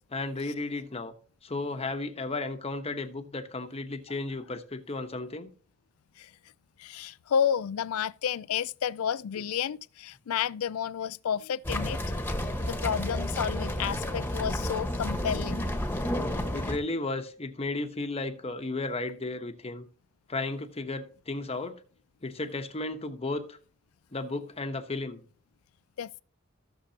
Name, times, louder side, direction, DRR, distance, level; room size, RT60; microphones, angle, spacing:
voice 1, 0.1-1.1 1.4-5.5 16.5-19.8 20.3-21.8 22.2-23.6 24.1-25.2, left 2 dB, 30° left, 1.0 m, -34 dB
voice 2, 6.8-12.0 12.7-15.6 26.0-26.2, left 8 dB, 90° left, 0.4 m, -31 dB
sound 1, 11.6-16.8, left 1 dB, 10° left, 1.3 m, -31 dB
16.0 x 6.7 x 2.9 m
head